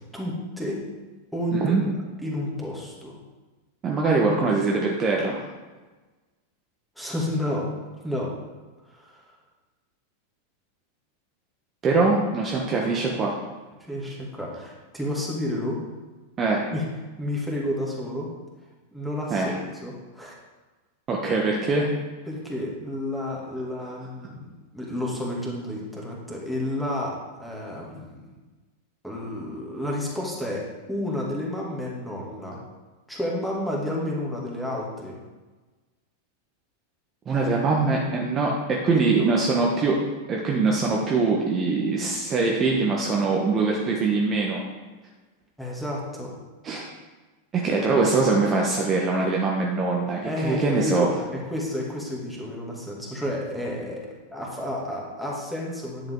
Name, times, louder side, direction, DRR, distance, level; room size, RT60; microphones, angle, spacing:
voice 1, 0.1-0.8 1.3-1.9 2.2-3.1 7.0-7.7 8.0-8.3 8.9-9.3 13.9-15.8 16.7-16.8 17.2-18.3 18.9-19.5 19.8-20.4 22.3-28.3 29.0-30.6 30.9-32.6 33.1-35.2 38.9-39.3 45.6-46.3 50.2-54.0 54.3-56.1, left 1 dB, ahead, -4 dB, 2.5 m, -31 dB
voice 2, 1.5-1.8 3.8-5.5 11.8-13.4 16.4-16.7 19.3-19.6 21.1-21.9 37.3-40.0 40.3-44.6 46.6-46.9 47.5-51.1, right 3 dB, 25° right, -1 dB, 1.3 m, -23 dB
10.5 x 7.2 x 3.9 m, 1.2 s
figure-of-eight pair, 90°, 0 cm